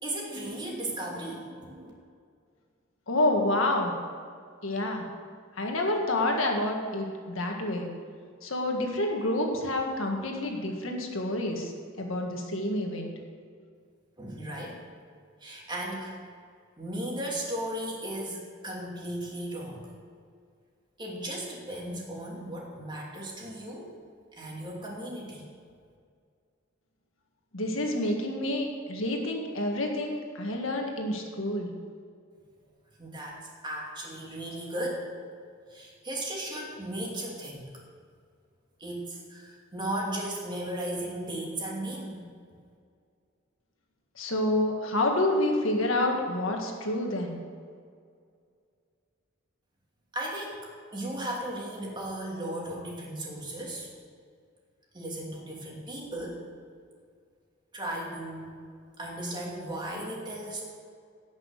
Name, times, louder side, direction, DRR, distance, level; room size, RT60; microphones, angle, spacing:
voice 1, 0.0-1.9 14.2-14.8 15.4-16.2 16.8-19.9 21.0-23.9 24.3-25.4 33.0-35.1 35.7-37.7 38.8-42.3 50.1-53.9 54.9-56.4 57.7-58.5 59.0-60.6, right 1 dB, 20° right, -3 dB, 2.7 m, -36 dB
voice 2, 3.1-3.9 4.6-5.1 5.6-7.9 8.4-11.7 12.0-13.1 27.5-31.7 44.2-47.4, left 1 dB, 75° left, 1 dB, 1.8 m, -28 dB
18.0 x 6.2 x 6.6 m, 2.1 s
head